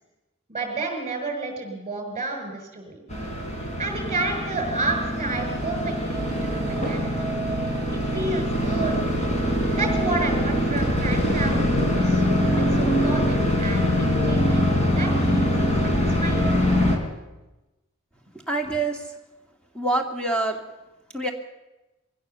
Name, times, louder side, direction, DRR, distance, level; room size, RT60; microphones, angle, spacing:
voice 1, 0.5-3.0 3.6-7.4 7.9-9.0 9.7-14.7 15.0-15.5 15.8-16.4, right 3 dB, 30° right, 4 dB, 6.0 m, -31 dB
sound 1, 3.1-17.0, equal, 35° left, 4.0 m, -23 dB
voice 2, 18.5-19.0 19.7-20.6 21.1-21.3, right 2 dB, 5° left, 2 dB, 2.5 m, -25 dB
23.0 x 16.0 x 7.0 m, 1.0 s
head